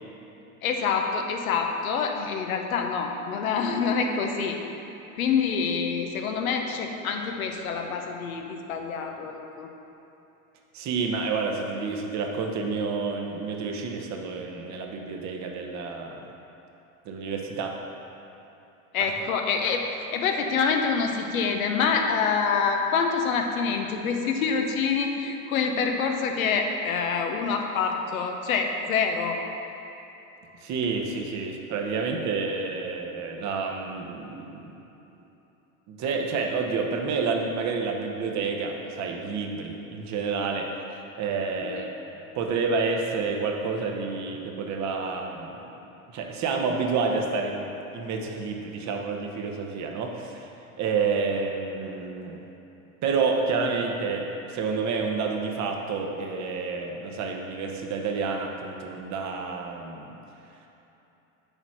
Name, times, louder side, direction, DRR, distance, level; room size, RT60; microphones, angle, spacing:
voice 1, 0.6-4.6 5.2-9.7 18.9-19.9 20.1-29.4 41.6-41.9, left 5 dB, 85° left, 3 dB, 0.9 m, -26 dB
voice 2, 10.7-16.3 17.0-17.7 30.6-34.8 35.9-45.6 46.1-50.5 50.8-52.4 53.0-60.2, right 4 dB, 45° right, 2 dB, 1.0 m, -29 dB
6.9 x 4.2 x 6.0 m, 3.0 s
hypercardioid pair, 95°, 41 cm